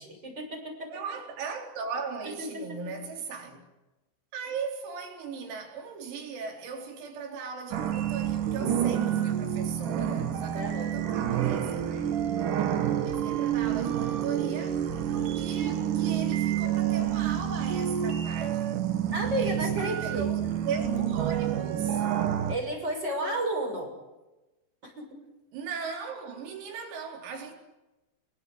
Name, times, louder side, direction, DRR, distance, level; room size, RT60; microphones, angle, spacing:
voice 1, 0.0-0.9 2.2-2.8 10.5-11.1 19.1-20.3 22.5-23.9 24.8-25.1, right 1 dB, 20° right, 7.2 m, -32 dB
voice 2, 0.9-3.7 4.3-12.1 13.0-18.8 19.4-22.0 25.5-27.5, right 5 dB, 90° right, 6.9 m, -38 dB
sound 1, 7.7-22.5, right 10 dB, 65° right, 2.1 m, -28 dB
29.5 x 21.5 x 8.1 m
omnidirectional pair, 5.9 m